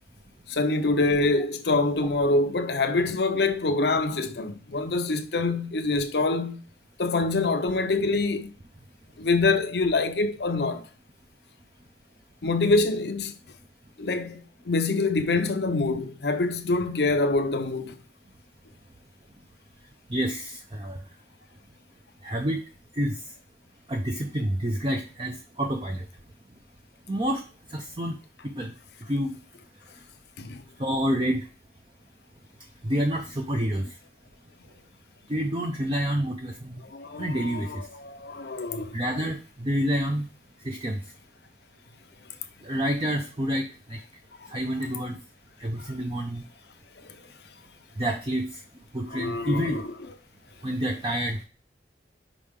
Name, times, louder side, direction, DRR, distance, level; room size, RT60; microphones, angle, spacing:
voice 1, 0.5-6.6 7.0-8.5 9.2-10.8 12.4-13.3 14.0-14.4 14.7-18.0 30.4-30.6 36.9-39.0 44.4-44.5 49.1-49.8, left 3 dB, 65° left, 0.8 m, -25 dB
voice 2, 20.1-21.0 22.2-22.6 23.0-23.2 23.9-26.0 27.1-27.4 27.7-28.2 28.6-28.7 29.1-29.3 30.8-31.4 32.8-33.9 35.3-36.8 37.2-37.8 38.9-40.3 40.6-41.0 42.6-43.6 43.9-44.0 44.5-45.2 45.6-46.4 48.0-48.5 48.9-49.8 50.6-51.4, equal, 30° right, 0.6 m, -28 dB
5.3 x 5.0 x 3.6 m
head